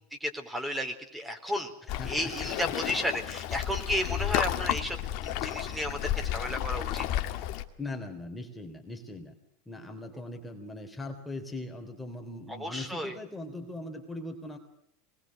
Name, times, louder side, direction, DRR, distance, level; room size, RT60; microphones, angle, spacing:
voice 1, 0.2-1.7 2.1-7.1 12.5-13.2, left 1 dB, 5° right, 5 dB, 3.8 m, -33 dB
voice 2, 1.8-2.5 7.8-9.3 9.7-14.6, left 2 dB, 10° left, 4 dB, 3.4 m, -40 dB
Waves surf, 1.9-7.6, left 12 dB, 55° left, 2.0 m, -32 dB
24.5 x 21.0 x 6.5 m, 0.77 s
hypercardioid pair, 105°, 0 cm